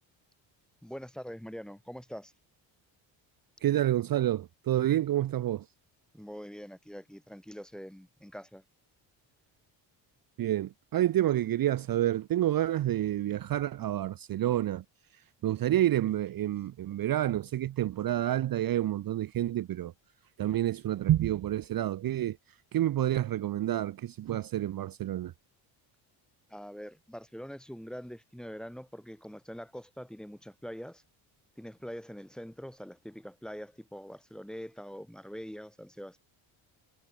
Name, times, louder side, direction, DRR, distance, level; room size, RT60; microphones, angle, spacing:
voice 1, 0.8-2.3 6.1-8.6 26.5-31.0 31.6-36.2, equal, ahead, 2.7 m, -44 dB
voice 2, 3.6-5.7 10.4-14.8 15.4-19.9 20.4-22.4 22.7-25.3, right 13 dB, 50° right, 0.7 m, -28 dB
cardioid pair, 100°, 46 cm